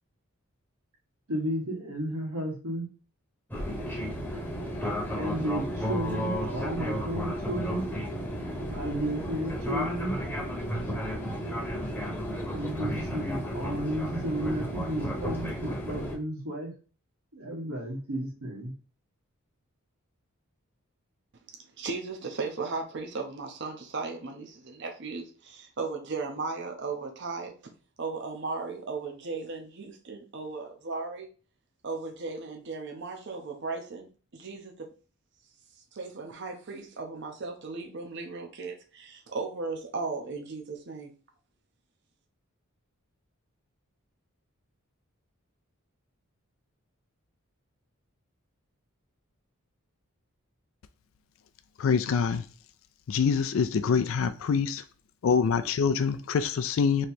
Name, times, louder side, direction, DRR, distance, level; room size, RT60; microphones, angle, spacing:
voice 1, 1.3-2.9 5.1-7.9 8.7-10.2 12.5-16.7 17.3-18.7, right 1 dB, 80° right, 1.4 m, -33 dB
Fixed-wing aircraft airplane, 3.5-16.2, equal, 10° left, 0.8 m, -33 dB
voice 2, 21.8-27.5 28.0-31.3 31.8-34.1 34.3-34.9 35.9-41.1, right 4 dB, 50° right, 0.7 m, -36 dB
voice 3, 51.8-52.5 53.1-54.8 55.2-57.1, left 6 dB, 65° left, 0.3 m, -25 dB
3.1 x 2.8 x 4.2 m
head